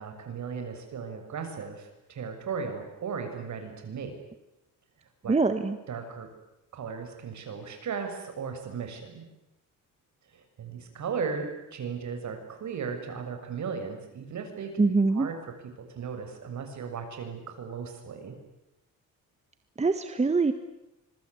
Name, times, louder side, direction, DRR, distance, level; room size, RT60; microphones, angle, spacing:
voice 1, 0.0-4.2 5.2-5.4 5.9-6.3 6.7-9.2 10.3-14.8 15.1-15.4 16.0-18.4, right 6 dB, 55° right, 6 dB, 7.0 m, -36 dB
voice 2, 5.3-5.8 14.8-15.3 19.8-20.5, right 3 dB, 20° right, 9 dB, 1.6 m, -23 dB
26.0 x 23.0 x 9.8 m, 0.90 s
cardioid pair, 125°, 33 cm